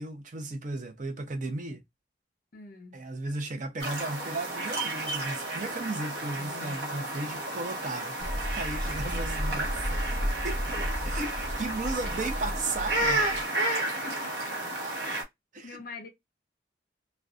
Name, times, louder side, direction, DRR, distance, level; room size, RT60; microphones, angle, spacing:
voice 1, 0.0-1.8 2.9-10.0 10.4-10.6 11.0-13.3 15.5-15.8, right 2 dB, 45° right, 0.5 m, -35 dB
voice 2, 2.5-3.0 6.2-6.8 14.0-14.6 15.6-16.1, left 4 dB, 50° left, 0.6 m, -45 dB
sound 1, 3.8-15.2, right 1 dB, 60° right, 0.9 m, -32 dB
sound 2, 8.2-13.4, equal, 10° left, 0.5 m, -33 dB
2.4 x 2.2 x 2.3 m
head